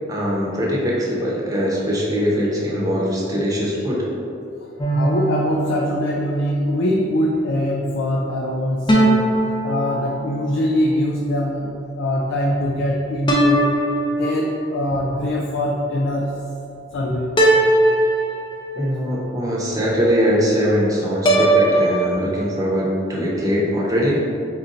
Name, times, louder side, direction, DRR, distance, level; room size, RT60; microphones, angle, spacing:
voice 1, 0.1-4.0 18.7-24.4, equal, 20° right, -5 dB, 0.7 m, -21 dB
sound 1, 4.8-6.5 8.9-10.6 13.3-14.8 17.4-19.0 21.2-22.1, right 1 dB, 25° left, 0.5 m, -19 dB
voice 2, 4.9-13.8 14.2-16.4 16.9-17.3, left 1 dB, 90° left, -1 dB, 0.4 m, -22 dB
4.3 x 2.7 x 3.8 m, 2.6 s
head